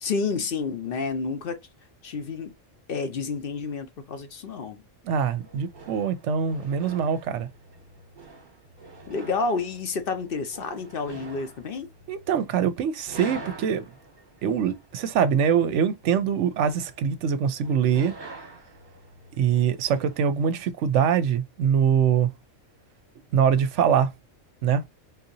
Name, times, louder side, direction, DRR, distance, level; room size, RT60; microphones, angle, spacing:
voice 1, 0.0-1.6 2.0-2.5 2.9-4.8 9.1-11.9, left 4 dB, 55° left, 0.8 m, -30 dB
voice 2, 5.0-7.5 12.1-13.9 14.4-18.1 19.4-22.3 23.3-24.1 24.6-24.8, right 7 dB, 70° right, 0.9 m, -23 dB
sound 1, 5.1-20.5, right 2 dB, 40° right, 1.1 m, -46 dB
3.9 x 2.7 x 2.6 m
omnidirectional pair, 1.3 m